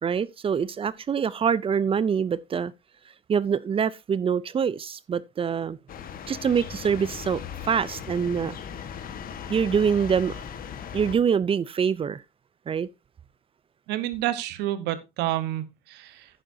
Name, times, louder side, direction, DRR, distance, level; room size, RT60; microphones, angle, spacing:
voice 1, 0.0-2.7 3.3-5.8 6.3-8.6 9.5-10.4 10.9-12.2 12.7-12.9, right 7 dB, 35° right, 0.5 m, -25 dB
sound 1, 5.9-11.2, left 8 dB, 60° left, 1.4 m, -38 dB
voice 2, 13.9-16.3, right 14 dB, 85° right, 1.2 m, -29 dB
10.0 x 9.9 x 2.7 m
cardioid pair, 110°, 17 cm